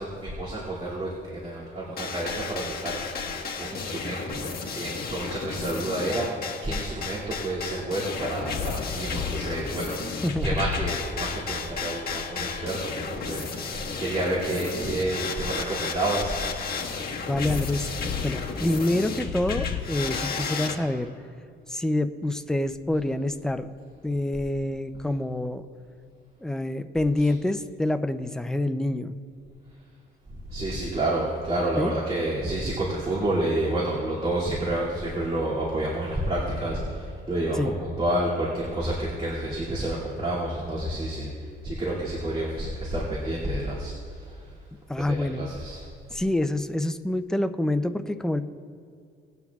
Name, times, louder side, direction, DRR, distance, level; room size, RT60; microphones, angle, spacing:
voice 1, 0.0-3.0 3.6-4.4 4.8-6.4 6.6-16.4 27.2-27.3 30.5-37.7 38.0-41.3 41.6-44.5 45.1-45.9, right 1 dB, 30° right, -7 dB, 2.5 m, -29 dB
sound 1, 2.0-20.8, left 5 dB, 50° left, 1.5 m, -32 dB
voice 2, 10.2-10.6 17.3-21.1 21.7-23.7 24.0-25.6 26.4-29.2 31.8-31.9 37.6-37.7 44.9-45.4 46.1-48.4, left 1 dB, 5° left, 9 dB, 0.5 m, -27 dB
19.5 x 9.2 x 2.4 m, 2.2 s
cardioid pair, 90°, 20 cm